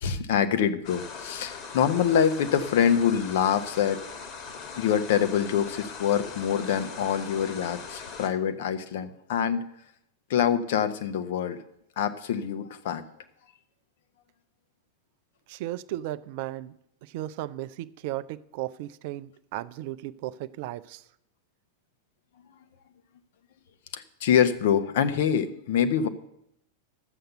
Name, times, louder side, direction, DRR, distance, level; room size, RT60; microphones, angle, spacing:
voice 1, 0.0-4.0 4.8-9.6 10.3-11.6 12.0-13.1 23.9-26.1, left 8 dB, 55° left, 10 dB, 0.9 m, -25 dB
sound 1, 0.8-8.3, left 5 dB, 35° left, 1.6 m, -41 dB
voice 2, 15.5-16.7 17.0-21.1, right 15 dB, 50° right, 14 dB, 0.4 m, -35 dB
12.0 x 7.9 x 6.7 m, 0.78 s
figure-of-eight pair, 90°, 0 cm